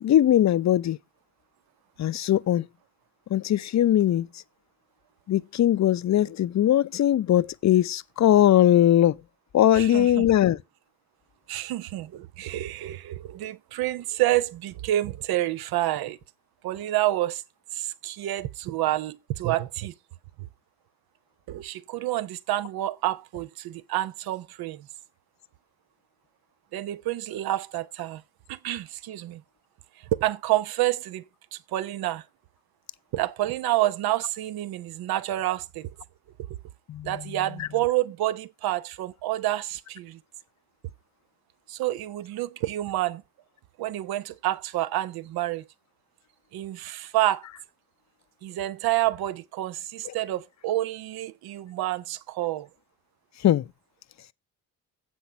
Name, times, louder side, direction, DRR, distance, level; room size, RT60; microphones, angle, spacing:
voice 1, 0.0-1.0 2.0-2.7 3.3-4.3 5.3-9.2 9.5-10.6 36.9-37.7 50.0-50.1 53.4-53.7, left 12 dB, 45° left, 0.6 m, -21 dB
voice 2, 9.7-10.3 11.5-16.2 16.6-17.4 17.7-19.9 20.4-20.5 21.5-24.9 26.7-28.2 28.5-29.4 30.0-31.2 31.5-32.2 33.1-35.9 37.0-40.2 41.7-43.2 43.8-45.6 46.5-47.5 48.4-52.7, right 15 dB, 70° right, 0.8 m, -28 dB
7.8 x 6.1 x 5.7 m
supercardioid pair, 55°, 38 cm